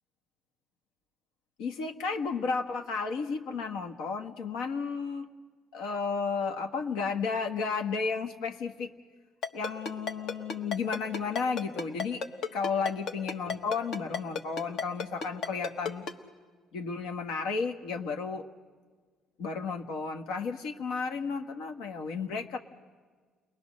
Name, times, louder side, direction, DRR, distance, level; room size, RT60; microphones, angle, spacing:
voice 1, 1.6-5.3 5.7-8.9 9.5-12.2 12.5-16.0 16.7-18.5 19.4-22.6, left 5 dB, 85° left, 5 dB, 1.4 m, -33 dB
Ringtone, 9.4-16.1, left 5 dB, 60° left, 1.4 m, -32 dB
30.0 x 21.5 x 6.4 m, 1.5 s
cardioid pair, 140°, 0 cm